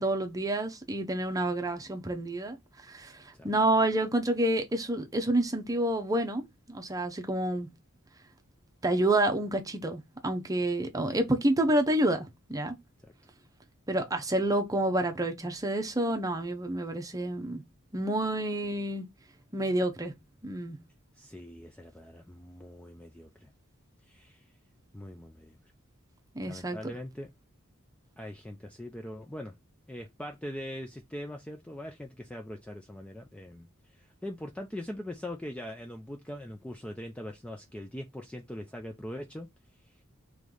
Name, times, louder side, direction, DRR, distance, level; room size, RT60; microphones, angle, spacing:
voice 1, 0.0-2.6 2.9-7.7 8.8-12.8 13.9-17.6 17.9-19.1 19.5-20.1 20.4-20.8 26.3-26.8, right 1 dB, 15° right, 0.7 m, -28 dB
voice 2, 21.2-23.5 24.0-24.5 24.9-25.6 26.4-27.3 28.2-29.6 29.9-39.5 39.8-40.0, left 1 dB, 5° left, 0.4 m, -42 dB
3.2 x 3.1 x 3.7 m
head